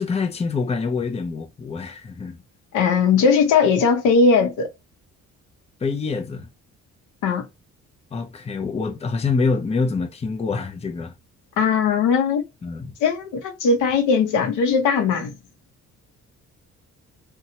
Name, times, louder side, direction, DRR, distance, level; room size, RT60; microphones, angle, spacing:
voice 1, 0.0-2.4 5.8-6.5 8.1-11.1 12.6-12.9, left 4 dB, 20° left, 0.5 m, -26 dB
voice 2, 2.7-4.7 7.2-7.5 11.6-12.4 13.0-15.4, left 5 dB, 85° left, 0.8 m, -19 dB
2.8 x 2.3 x 2.8 m
cardioid pair, 90°, 30 cm